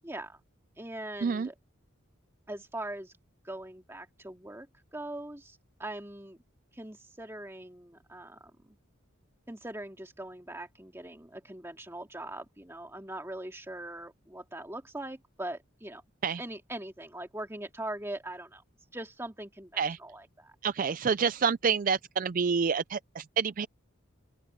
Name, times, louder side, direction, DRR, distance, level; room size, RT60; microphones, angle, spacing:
voice 1, 0.0-0.4 0.8-1.5 2.5-3.1 3.4-4.7 4.9-6.4 6.7-8.8 9.5-16.0 16.4-18.6 18.9-19.7 20.0-20.6, right 1 dB, 10° right, 2.1 m, -41 dB
voice 2, 20.6-23.7, right 6 dB, 40° right, 0.4 m, -28 dB
open air
head